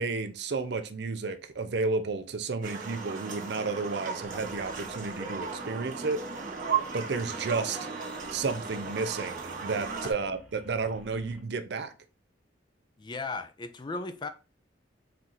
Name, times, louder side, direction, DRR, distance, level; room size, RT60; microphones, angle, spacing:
voice 1, 0.0-6.2 6.9-7.8 8.3-11.9, right 4 dB, 60° right, 0.5 m, -32 dB
sound 1, 2.6-10.1, right 5 dB, 45° right, 1.2 m, -36 dB
sound 2, 4.3-11.4, equal, ahead, 1.2 m, -54 dB
voice 2, 13.0-14.3, left 3 dB, 25° left, 0.3 m, -36 dB
4.4 x 2.5 x 3.9 m
head